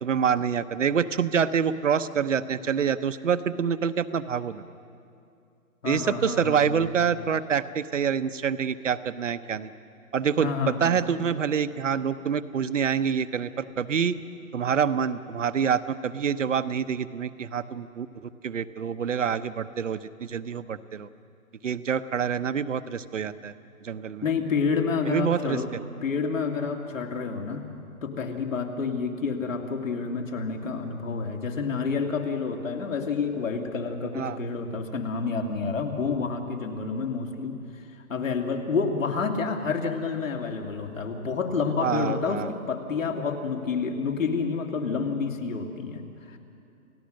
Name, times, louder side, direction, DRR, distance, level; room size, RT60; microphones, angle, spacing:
voice 1, 0.0-4.6 5.8-9.7 10.1-14.2 14.5-21.1 21.6-23.5 23.8-24.2 25.1-25.6 34.2-34.4 41.8-42.5, right 7 dB, 55° right, 13 dB, 0.9 m, -26 dB
voice 2, 5.8-6.8 10.4-10.9 24.2-25.7 26.0-27.6 28.0-37.6 38.1-46.4, left 5 dB, 60° left, 3 dB, 2.7 m, -29 dB
29.0 x 16.5 x 6.4 m, 2.5 s
hypercardioid pair, 170°, 45 cm